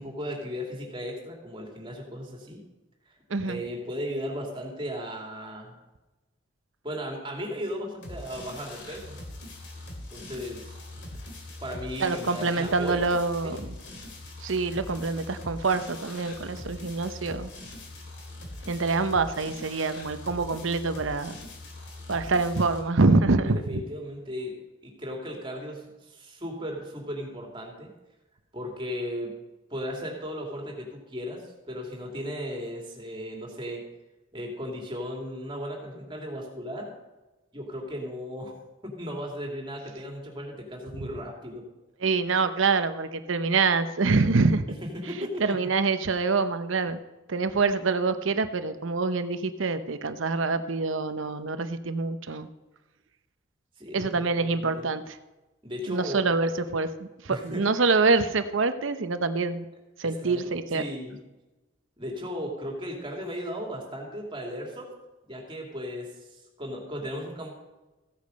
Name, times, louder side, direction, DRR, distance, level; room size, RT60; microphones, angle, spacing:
voice 1, 0.0-2.6 3.4-5.7 6.8-9.2 10.1-10.8 11.6-13.1 13.4-13.8 23.4-24.5 24.8-27.9 28.5-29.3 29.7-33.8 34.3-36.9 37.5-38.5 38.8-41.6 44.9-45.4 53.8-54.9 55.6-56.3 57.3-57.6 60.0-61.2 62.0-64.9 65.3-67.5, equal, 25° right, 0 dB, 2.6 m, -36 dB
voice 2, 3.3-3.6 12.0-13.6 14.4-17.5 18.7-21.3 22.1-23.8 42.0-44.6 45.4-47.0 47.3-52.5 53.9-55.2 55.9-59.6 60.0-60.8, right 3 dB, 75° right, 10 dB, 0.8 m, -25 dB
sound 1, 8.0-22.8, left 1 dB, 60° left, 2.7 m, -42 dB
15.5 x 8.5 x 5.2 m, 1.1 s
head